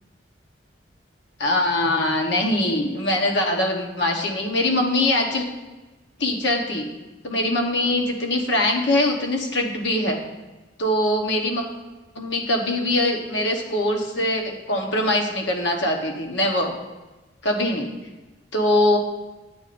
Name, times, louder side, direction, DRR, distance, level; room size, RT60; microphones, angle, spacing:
voice 1, 1.4-5.5 6.2-6.9 7.2-10.2 10.8-11.6 12.1-16.8 17.4-17.9 18.5-19.0, left 1 dB, 70° left, 1 dB, 1.1 m, -22 dB
9.0 x 6.8 x 2.5 m, 1.2 s
head